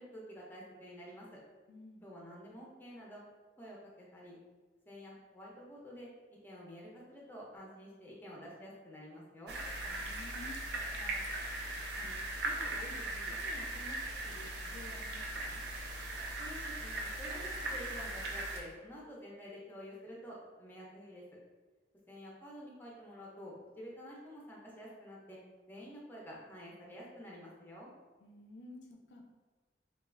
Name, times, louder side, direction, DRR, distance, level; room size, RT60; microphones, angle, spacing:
voice 1, 0.0-1.4 2.0-3.2 3.6-4.4 4.9-9.6 16.4-21.2 22.1-25.4 25.7-27.9, equal, 10° left, -4 dB, 0.5 m, -49 dB
voice 2, 1.7-2.1 9.9-11.7 12.0-15.7 28.2-29.2, left 2 dB, 75° left, 1 dB, 0.4 m, -53 dB
sound 1, 9.5-18.6, right 2 dB, 65° right, 0.4 m, -39 dB
3.1 x 2.3 x 2.4 m, 1.3 s
head